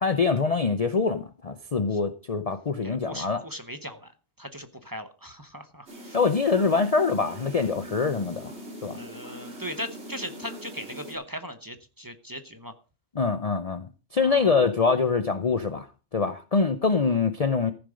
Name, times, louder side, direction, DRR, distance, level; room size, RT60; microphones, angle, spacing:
voice 1, 0.0-3.4 6.1-8.5 8.8-9.0 13.1-15.9 16.1-17.7, left 4 dB, 40° left, 0.6 m, -24 dB
voice 2, 2.8-4.1 4.4-6.2 8.9-12.7 14.2-14.7, equal, 20° right, 0.9 m, -39 dB
sound 1, 5.9-11.1, equal, 60° right, 3.0 m, -42 dB
14.5 x 7.0 x 5.1 m
omnidirectional pair, 1.3 m